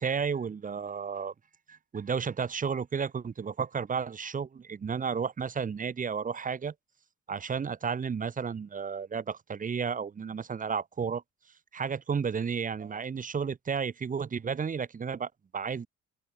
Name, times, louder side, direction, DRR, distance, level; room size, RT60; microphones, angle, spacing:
voice 1, 0.0-1.3 1.7-6.7 7.3-11.2 11.7-15.9, right 6 dB, 25° right, 0.6 m, -32 dB
open air
cardioid pair, 90°, 30 cm